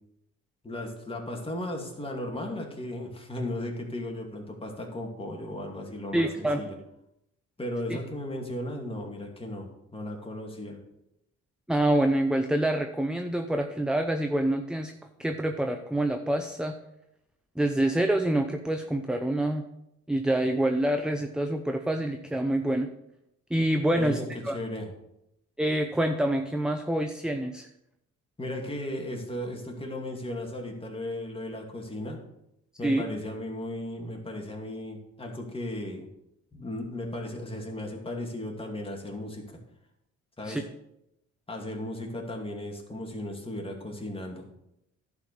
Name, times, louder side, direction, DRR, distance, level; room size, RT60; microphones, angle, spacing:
voice 1, 0.6-6.8 7.6-10.8 24.0-24.9 28.4-32.2 32.8-36.1 36.5-39.6 40.4-40.7 41.5-44.5, left 1 dB, 20° left, 0 dB, 2.4 m, -36 dB
voice 2, 6.1-6.6 7.9-8.0 11.7-14.9 15.2-16.7 17.6-19.6 20.1-22.9 23.5-24.2 24.4-24.6 25.6-27.7 32.8-33.0 40.4-40.6, right 1 dB, 5° right, 6 dB, 0.6 m, -26 dB
11.0 x 4.8 x 6.9 m, 0.83 s
cardioid pair, 90°, 30 cm